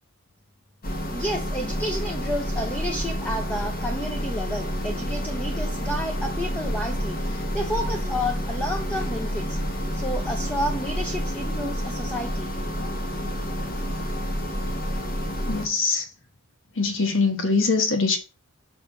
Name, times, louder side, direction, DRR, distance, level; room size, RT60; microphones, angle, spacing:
sound 1, 0.8-15.7, equal, 40° left, 1.2 m, -29 dB
voice 1, 1.1-9.6 9.9-12.5, equal, 5° left, 0.7 m, -31 dB
voice 2, 15.5-16.1 16.7-18.2, left 4 dB, 60° left, 1.3 m, -23 dB
5.6 x 3.4 x 5.5 m
head